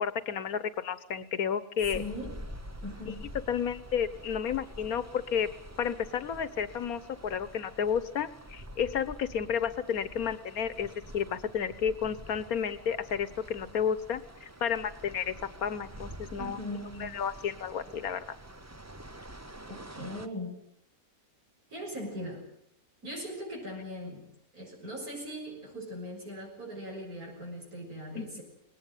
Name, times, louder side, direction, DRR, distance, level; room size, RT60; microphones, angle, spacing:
voice 1, 0.0-2.0 3.0-3.1 3.5-5.5 5.8-15.3 15.6-16.6 17.0-18.3 28.2-28.4, left 7 dB, 75° left, 15 dB, 1.6 m, -32 dB
sound 1, 1.8-20.3, right 1 dB, 15° right, 0.7 m, -47 dB
voice 2, 1.9-2.4 2.8-3.2 16.4-17.1 19.7-20.6 21.7-22.5 23.0-24.3 24.5-28.4, equal, 80° right, 0 dB, 7.0 m, -40 dB
20.5 x 18.0 x 9.2 m, 0.73 s
omnidirectional pair, 1.5 m